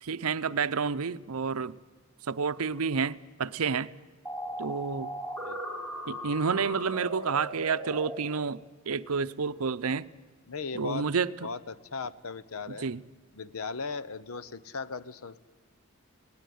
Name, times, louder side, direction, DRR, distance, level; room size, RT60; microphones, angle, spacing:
voice 1, 0.0-1.7 2.3-3.9 4.6-5.1 6.1-10.1 10.7-11.5 12.8-13.0, right 5 dB, 85° right, 0.7 m, -30 dB
sound 1, 4.2-8.2, right 1 dB, 5° left, 3.2 m, -38 dB
voice 2, 10.5-11.1 11.4-12.9 13.3-15.5, left 4 dB, 80° left, 0.9 m, -37 dB
19.5 x 18.5 x 9.4 m
head